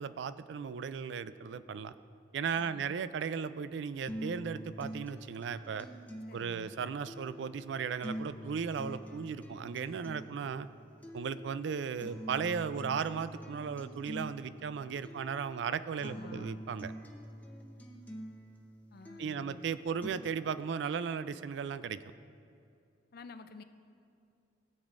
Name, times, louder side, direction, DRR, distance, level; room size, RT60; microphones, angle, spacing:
voice 1, 0.0-1.9 2.3-5.9 6.3-10.7 11.1-16.9 19.2-22.0, right 6 dB, 65° right, 14 dB, 0.3 m, -36 dB
voice 2, 2.5-3.0 6.3-6.7 16.0-16.6 18.9-19.7 23.1-23.6, left 3 dB, 55° left, 10 dB, 0.5 m, -50 dB
sound 1, 4.1-20.1, equal, 10° left, 0.7 m, -46 dB
16.5 x 8.1 x 2.5 m, 2.5 s
head